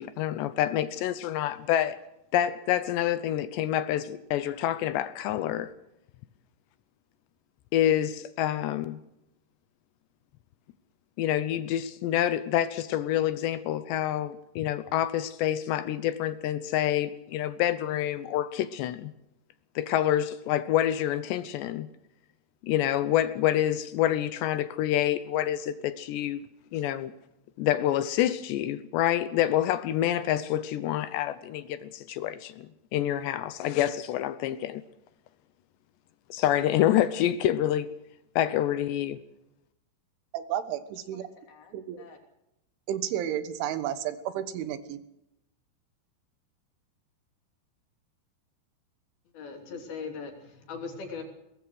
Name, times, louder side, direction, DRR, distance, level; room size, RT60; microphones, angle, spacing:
voice 1, 0.0-2.0 2.3-5.7 7.7-9.0 11.2-19.1 19.8-21.9 22.6-26.4 26.7-27.1 27.6-34.8 36.3-37.9 38.4-39.2, left 12 dB, 75° left, 2.9 m, -27 dB
voice 2, 40.3-41.2 41.7-42.0 42.9-45.0, right 10 dB, 90° right, 3.8 m, -32 dB
voice 3, 41.1-42.2 49.3-51.2, left 5 dB, 55° left, 4.8 m, -41 dB
23.0 x 19.5 x 6.4 m
omnidirectional pair, 5.3 m